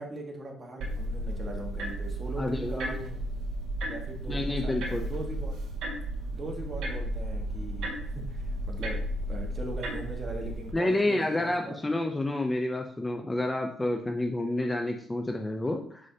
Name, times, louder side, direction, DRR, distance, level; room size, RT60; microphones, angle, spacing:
voice 1, 0.0-3.2 3.8-5.5 6.3-9.0 9.3-11.8, right 2 dB, 25° right, 1 dB, 1.5 m, -40 dB
sound 1, 0.8-10.7, right 1 dB, 70° right, 1.7 m, -34 dB
voice 2, 2.4-2.9 4.3-5.1 10.7-16.0, left 2 dB, 15° left, 4 dB, 0.5 m, -29 dB
6.5 x 5.3 x 2.8 m, 0.63 s
cardioid pair, 105°, 0 cm